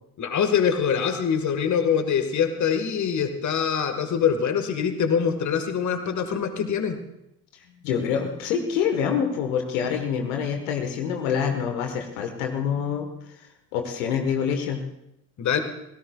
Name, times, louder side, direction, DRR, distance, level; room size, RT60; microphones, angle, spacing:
voice 1, 0.2-7.0 15.4-15.6, left 7 dB, 40° left, 8 dB, 1.7 m, -24 dB
voice 2, 7.5-13.1 13.4-13.5 13.7-14.8, left 7 dB, 65° left, 5 dB, 1.5 m, -26 dB
25.5 x 17.5 x 2.4 m, 0.82 s
figure-of-eight pair, 50°, 46 cm